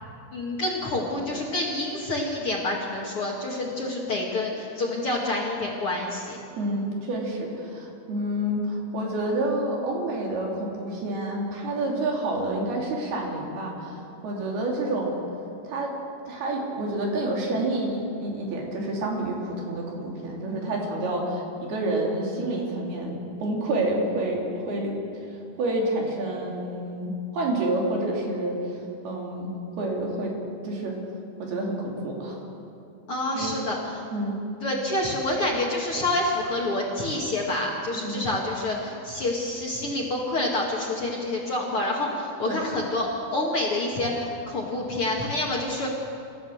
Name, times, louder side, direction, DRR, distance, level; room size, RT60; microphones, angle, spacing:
voice 1, 0.3-6.4 33.1-34.1 34.6-45.9, left 2 dB, 45° left, -2 dB, 2.3 m, -28 dB
voice 2, 6.6-15.2 15.7-15.9 16.3-25.2 25.6-28.8 29.1-30.3 30.6-31.0 31.4-32.4 33.3-33.6 34.1-34.4 37.9-38.2 42.5-42.6, right 1 dB, 75° right, -1 dB, 5.0 m, -28 dB
27.5 x 14.5 x 7.3 m, 2.7 s
omnidirectional pair, 4.6 m